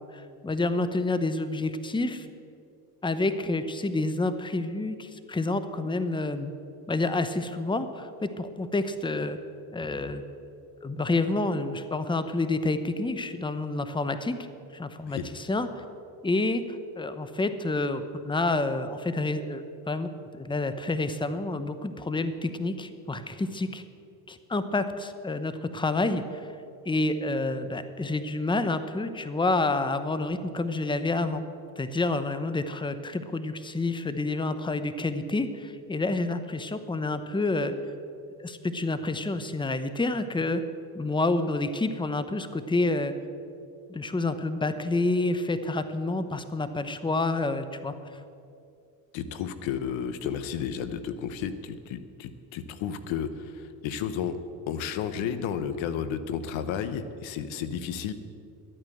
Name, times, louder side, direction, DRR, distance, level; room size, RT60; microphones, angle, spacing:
voice 1, 0.1-2.3 3.0-6.5 6.9-9.4 9.7-10.2 10.8-14.5 14.7-15.7 16.2-20.1 20.4-23.8 24.3-26.2 26.8-31.4 31.8-37.7 38.4-40.6 40.9-43.1 43.9-47.9, left 2 dB, 10° left, 11 dB, 0.9 m, -28 dB
voice 2, 49.1-54.4 54.7-58.1, left 8 dB, 75° left, 12 dB, 1.0 m, -32 dB
12.0 x 8.9 x 7.8 m, 2.5 s
supercardioid pair, 70°, 46 cm